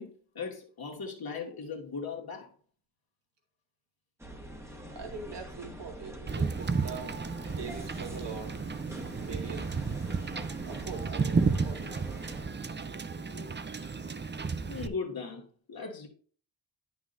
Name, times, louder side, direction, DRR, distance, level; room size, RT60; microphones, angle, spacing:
voice 1, 0.0-2.5 13.2-13.5 14.6-16.1, left 5 dB, 50° left, 2.1 m, -39 dB
sound 1, 4.2-12.4, right 1 dB, 5° right, 1.6 m, -45 dB
voice 2, 4.9-8.6 9.2-9.8 10.7-11.9, right 4 dB, 60° right, 2.4 m, -42 dB
Wind / Boat Water vehicle, 6.3-14.9, right 4 dB, 25° right, 0.7 m, -33 dB
9.5 x 6.1 x 2.7 m
cardioid pair, 60°, 46 cm